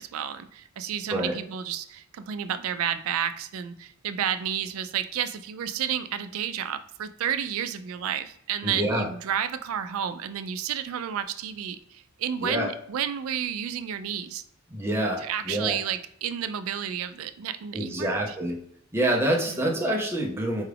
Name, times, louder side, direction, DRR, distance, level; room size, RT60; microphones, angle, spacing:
voice 1, 0.0-14.4 15.2-18.3 19.4-19.7, right 9 dB, 75° right, 11 dB, 0.3 m, -31 dB
voice 2, 8.6-9.1 12.4-12.7 14.7-15.8 17.7-18.6 18.9-20.6, right 1 dB, 10° right, 0 dB, 0.5 m, -27 dB
4.7 x 2.3 x 3.3 m, 0.68 s
head